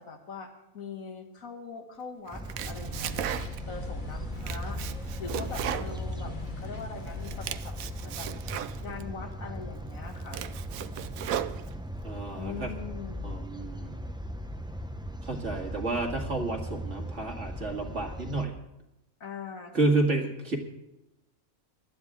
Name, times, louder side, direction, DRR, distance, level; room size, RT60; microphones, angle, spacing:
voice 1, 0.0-3.3 3.7-8.3 8.8-10.4 12.4-13.4 19.2-19.7, left 5 dB, 75° left, 4 dB, 2.2 m, -42 dB
sound 1, 2.3-18.4, equal, 5° right, 0.5 m, -39 dB
Domestic sounds home sounds, 2.3-3.8 4.2-6.7 7.1-9.1 9.6-9.7 10.1-12.0, right 10 dB, 85° right, 1.1 m, -36 dB
sound 2, 2.6-7.6, left 3 dB, 40° left, 1.2 m, -41 dB
voice 2, 12.0-12.7 13.2-14.0 15.2-18.5 19.7-20.6, right 2 dB, 60° right, 2 dB, 2.4 m, -30 dB
19.5 x 12.5 x 3.6 m, 0.93 s
omnidirectional pair, 1.4 m